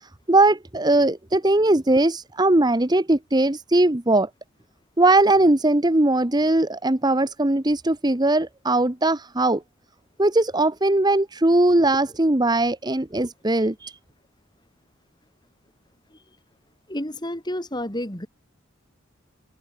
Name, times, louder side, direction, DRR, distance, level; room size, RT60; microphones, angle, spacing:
voice 1, 0.0-4.3 5.0-9.6 10.2-14.0, right 2 dB, 20° right, 1.0 m, -20 dB
voice 2, 16.9-18.3, left 1 dB, 20° left, 4.5 m, -30 dB
head